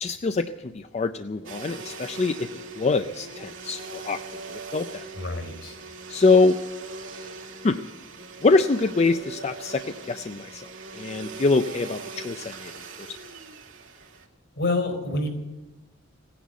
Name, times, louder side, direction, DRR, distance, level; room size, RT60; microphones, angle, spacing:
voice 1, 0.0-5.0 6.1-6.6 7.6-7.8 8.4-10.7 10.9-12.7 13.0-13.1, left 3 dB, 35° left, 9 dB, 0.4 m, -24 dB
Domestic sounds home sounds, 1.4-14.3, right 3 dB, 75° right, 2.4 m, -40 dB
voice 2, 5.1-5.7 14.5-15.3, left 2 dB, 70° left, 5 dB, 4.2 m, -27 dB
17.5 x 10.0 x 8.3 m, 1.1 s
head